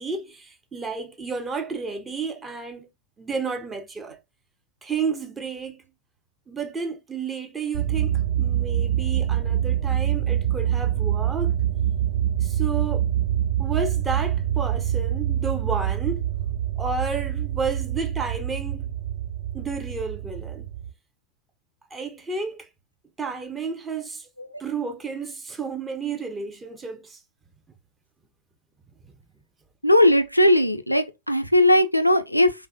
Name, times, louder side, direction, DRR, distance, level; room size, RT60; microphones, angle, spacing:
voice 1, 0.0-2.9 3.2-4.2 4.8-5.8 6.5-11.6 12.4-13.1 13.6-16.3 16.8-18.9 19.5-20.7 21.9-22.7 23.2-24.3 24.6-27.2 29.0-29.1, right 4 dB, 15° right, 0.5 m, -31 dB
sound 1, 7.7-20.9, right 11 dB, 65° right, 0.9 m, -25 dB
voice 2, 29.8-32.5, left 1 dB, 90° left, 0.3 m, -18 dB
3.3 x 2.1 x 2.5 m
figure-of-eight pair, 90°, 0 cm